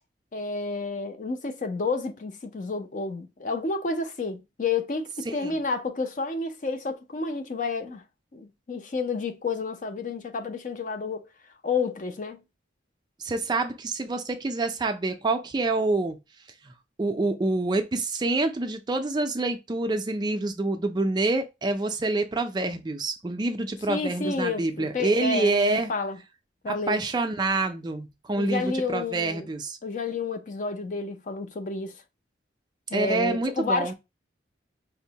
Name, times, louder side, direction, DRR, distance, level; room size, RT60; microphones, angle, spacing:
voice 1, 0.3-8.0 8.3-11.2 11.6-12.4 23.9-26.2 26.6-27.0 28.4-29.5 29.8-32.0 32.9-33.9, left 4 dB, 45° left, 0.4 m, -30 dB
voice 2, 5.3-5.6 13.2-16.2 16.6-16.7 17.0-25.9 26.7-29.8 32.9-33.9, right 2 dB, 25° right, 0.3 m, -27 dB
5.1 x 2.0 x 2.7 m
head